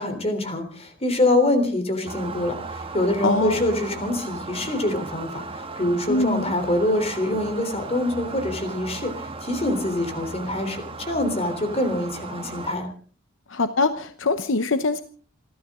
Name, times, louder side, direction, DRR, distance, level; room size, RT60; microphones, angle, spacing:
voice 1, 0.0-12.9, left 1 dB, 30° left, 7 dB, 3.5 m, -25 dB
sound 1, 2.1-12.8, right 3 dB, 30° right, 1.5 m, -36 dB
voice 2, 3.2-3.6 6.1-6.4 13.5-15.0, left 3 dB, 70° left, 11 dB, 0.9 m, -23 dB
28.0 x 13.0 x 3.7 m, 0.40 s
head